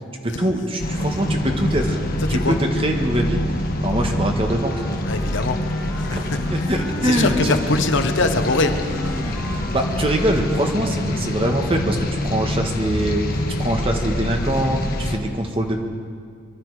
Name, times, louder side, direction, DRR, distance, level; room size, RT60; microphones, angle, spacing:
voice 1, 0.2-2.0 2.3-4.8 6.1-7.6 9.3-9.4 9.7-13.2 13.6-15.8, right 1 dB, 30° right, 3 dB, 1.5 m, -23 dB
sound 1, 0.8-15.2, left 1 dB, 45° left, 1.4 m, -25 dB
Wind instrument woodwind instrument, 4.4-7.6 8.3-11.1, left 1 dB, 5° left, 3.0 m, -36 dB
voice 2, 5.1-5.6 5.9-6.2 7.0-9.2, left 3 dB, 60° left, 7 dB, 1.0 m, -22 dB
24.0 x 12.0 x 4.9 m, 2.1 s
head